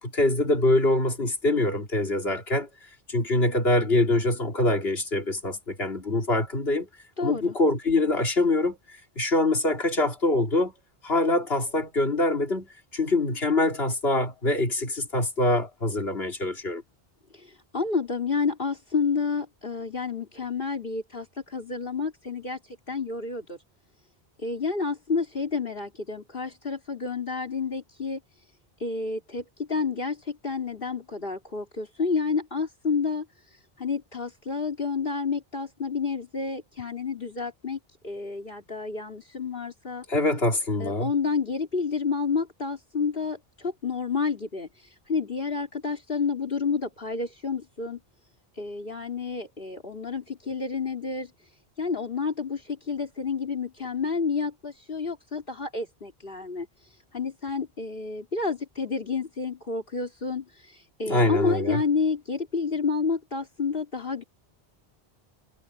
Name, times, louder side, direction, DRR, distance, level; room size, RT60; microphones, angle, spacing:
voice 1, 0.0-2.7 3.1-6.9 7.2-10.7 11.0-12.7 12.9-16.8 40.1-41.1 61.1-61.8, left 2 dB, 75° left, 3.4 m, -24 dB
voice 2, 7.2-7.6 17.3-23.6 24.4-28.2 28.8-33.3 33.8-40.0 40.8-48.0 48.6-51.3 51.8-56.7 57.1-64.2, left 5 dB, 60° left, 3.5 m, -30 dB
omnidirectional pair, 1.0 m